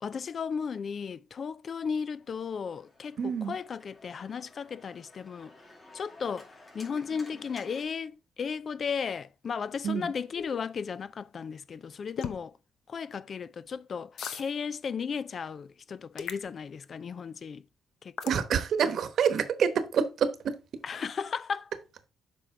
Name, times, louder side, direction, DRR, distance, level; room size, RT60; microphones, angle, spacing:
voice 1, 0.0-5.5 5.9-12.5 12.9-17.6 18.0-18.4 20.8-21.7, left 6 dB, 50° left, 0.3 m, -35 dB
Organ, 2.0-7.8, left 2 dB, 30° left, 3.2 m, -53 dB
voice 2, 3.2-3.6 9.8-10.1 18.2-20.5, right 7 dB, 65° right, 1.0 m, -27 dB
sound 1, 10.4-10.6 12.2-12.4 14.2-14.5 16.2-16.5 18.2-18.4, left 7 dB, 75° left, 0.8 m, -36 dB
7.7 x 5.3 x 3.7 m
cardioid pair, 90°, 0 cm